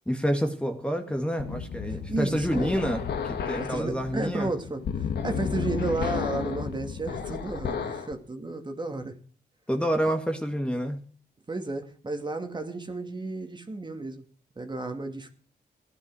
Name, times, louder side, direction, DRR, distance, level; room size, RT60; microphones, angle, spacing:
voice 1, 0.1-4.5 9.7-11.0, equal, 5° left, 5 dB, 1.9 m, -28 dB
sound 1, 1.4-8.1, left 7 dB, 80° left, 1.8 m, -32 dB
voice 2, 1.9-2.7 3.6-9.1 11.5-14.2 14.6-15.3, right 3 dB, 25° right, 5 dB, 2.3 m, -33 dB
16.0 x 11.0 x 6.3 m, 0.42 s
cardioid pair, 80°, 17 cm